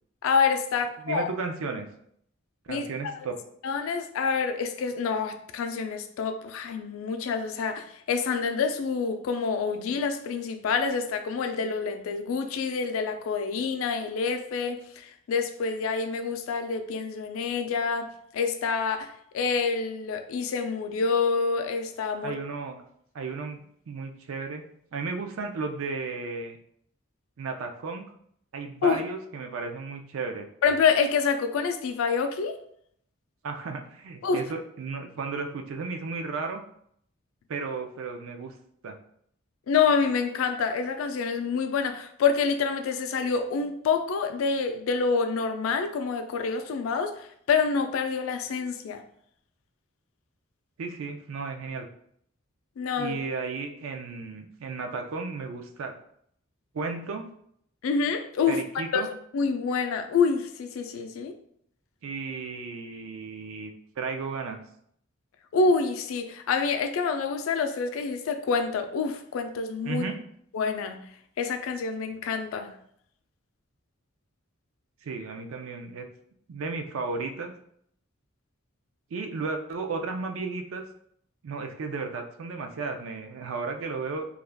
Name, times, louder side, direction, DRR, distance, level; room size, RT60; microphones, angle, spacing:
voice 1, 0.2-1.3 2.7-2.8 3.6-22.4 28.8-29.0 30.6-32.6 34.2-34.4 39.7-49.0 52.8-53.1 57.8-58.6 58.9-59.1 59.3-61.3 65.5-70.0 70.5-71.0 71.4-72.7, left 5 dB, 75° left, 0.3 m, -27 dB
voice 2, 1.0-1.9 2.6-3.4 22.2-22.8 23.1-24.6 24.9-26.6 27.4-28.0 28.5-30.5 33.4-36.6 37.5-38.5 38.8-38.9 50.8-51.9 53.0-55.9 56.7-57.3 58.5-59.1 62.0-64.6 69.8-70.2 75.0-76.1 76.5-77.5 79.1-80.8 81.4-84.3, right 4 dB, 80° right, 0.4 m, -34 dB
2.3 x 2.2 x 3.3 m
head